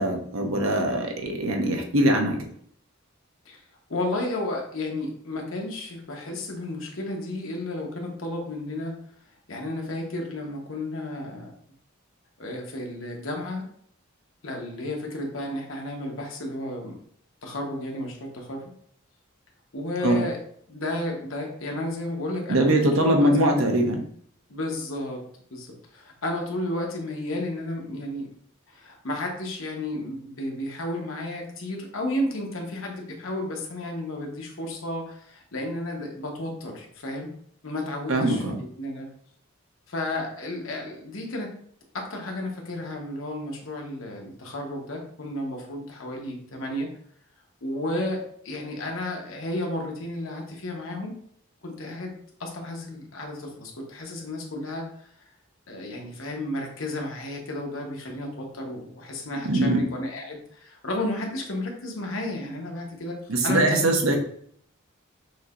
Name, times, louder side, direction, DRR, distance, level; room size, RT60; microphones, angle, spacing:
voice 1, 0.0-2.5 20.0-20.2 22.5-24.0 38.1-38.6 59.4-59.9 63.3-64.2, right 1 dB, 85° right, 2 dB, 0.9 m, -22 dB
voice 2, 3.9-9.0 9.5-11.5 12.4-13.6 14.4-17.0 17.4-18.7 19.7-20.4 20.7-22.6 23.0-23.3 24.5-25.2 25.5-28.3 28.7-37.3 37.6-38.4 38.8-39.1 39.9-41.6 41.9-46.9 47.6-51.2 51.6-55.3 55.7-63.2 63.4-64.0, left 1 dB, 75° left, 1 dB, 1.0 m, -32 dB
6.2 x 2.8 x 2.5 m, 0.64 s
head